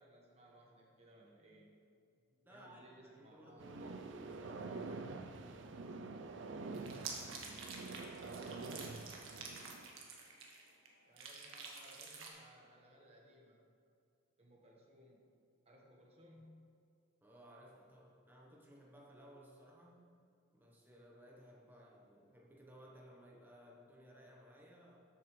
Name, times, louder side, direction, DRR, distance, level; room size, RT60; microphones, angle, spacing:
voice 1, 0.0-1.8 2.5-3.7 11.0-13.6 14.4-15.2 15.6-16.6, equal, 30° right, -2 dB, 1.3 m, -62 dB
voice 2, 2.3-6.2 17.2-20.1 20.5-25.0, equal, 10° right, -2 dB, 1.1 m, -59 dB
sound 1, 3.6-10.0, right 3 dB, 65° right, 0.5 m, -47 dB
sound 2, 6.7-10.9 11.2-12.3, right 4 dB, 90° right, 1.6 m, -49 dB
13.5 x 7.9 x 3.3 m, 2.4 s
head